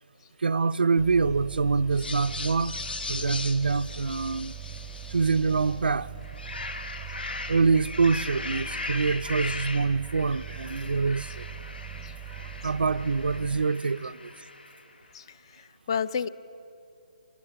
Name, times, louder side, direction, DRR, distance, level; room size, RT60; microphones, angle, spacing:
voice 1, 0.4-2.7 3.1-4.5 5.1-6.1 7.5-11.4 12.3-14.3, right 4 dB, 85° right, 0.6 m, -25 dB
sound 1, 1.0-13.7, right 10 dB, 5° right, 0.7 m, -41 dB
sound 2, 1.9-5.8 6.2-14.9, left 3 dB, 85° left, 1.8 m, -39 dB
voice 2, 15.1-16.3, left 7 dB, 30° left, 0.5 m, -32 dB
24.5 x 18.0 x 8.6 m
hypercardioid pair, 165°, 5 cm